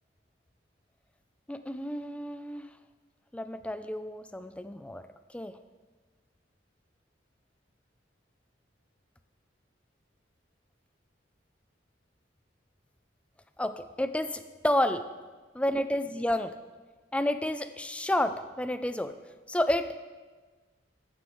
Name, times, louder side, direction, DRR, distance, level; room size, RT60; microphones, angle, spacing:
voice 1, 1.5-2.7 3.3-5.0 5.3-5.6 13.6-15.1 15.5-16.6 17.1-19.1 19.5-20.0, left 1 dB, 5° left, 10 dB, 0.3 m, -30 dB
13.5 x 9.6 x 3.1 m, 1.4 s
head